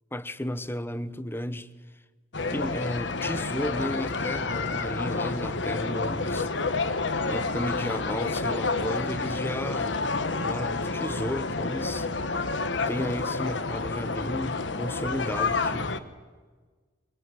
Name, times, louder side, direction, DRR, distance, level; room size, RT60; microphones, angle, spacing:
voice 1, 0.1-1.7 2.5-6.5 7.3-12.1 12.9-16.0, left 1 dB, 15° left, 1.0 m, -33 dB
sound 1, 2.3-16.0, left 3 dB, 85° left, 1.3 m, -29 dB
23.5 x 23.5 x 9.7 m
head